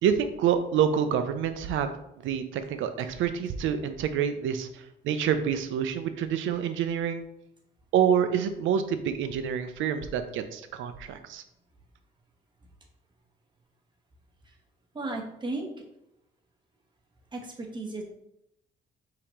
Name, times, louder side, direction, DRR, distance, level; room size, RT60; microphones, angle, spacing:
voice 1, 0.0-1.9 2.2-4.7 5.0-7.2 7.9-11.4, right 8 dB, 80° right, 10 dB, 0.5 m, -27 dB
voice 2, 14.9-15.7 17.3-18.0, right 2 dB, 25° right, 0 dB, 1.0 m, -34 dB
5.0 x 2.9 x 3.0 m, 0.80 s
cardioid pair, 90°, 20 cm